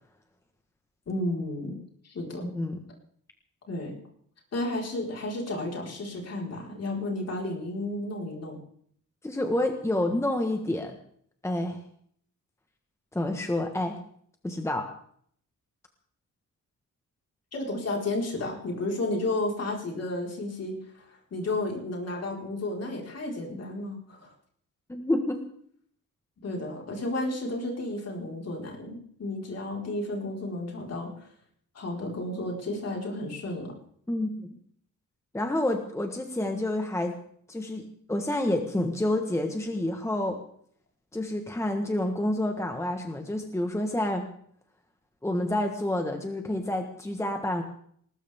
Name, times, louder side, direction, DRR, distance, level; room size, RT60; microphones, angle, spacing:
voice 1, 1.1-1.8 2.0-2.4 3.7-4.0 4.5-8.6 17.5-24.3 26.4-31.3 31.7-33.7, left 2 dB, 50° left, -1 dB, 4.5 m, -32 dB
voice 2, 2.4-2.8 9.2-11.0 11.4-11.8 13.1-14.0 14.4-14.9 24.9-25.4 34.1-34.6 35.3-37.1 37.5-40.4 41.1-44.3 45.2-47.6, left 1 dB, 10° left, 4 dB, 1.3 m, -28 dB
20.0 x 19.5 x 3.6 m, 0.63 s
wide cardioid pair, 170°, 32 cm